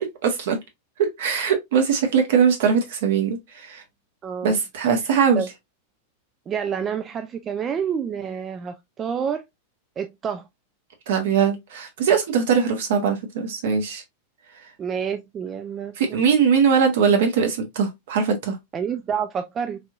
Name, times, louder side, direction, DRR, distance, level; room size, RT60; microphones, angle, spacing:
voice 1, 0.2-0.6 1.0-3.8 4.4-5.4 11.1-14.0 16.0-18.6, right 6 dB, 55° right, 0.9 m, -21 dB
voice 2, 4.2-4.6 5.4-5.5 6.5-9.4 10.0-10.5 14.8-16.2 18.7-19.8, right 7 dB, 25° right, 0.3 m, -28 dB
3.3 x 2.6 x 2.4 m
figure-of-eight pair, 90°, 0 cm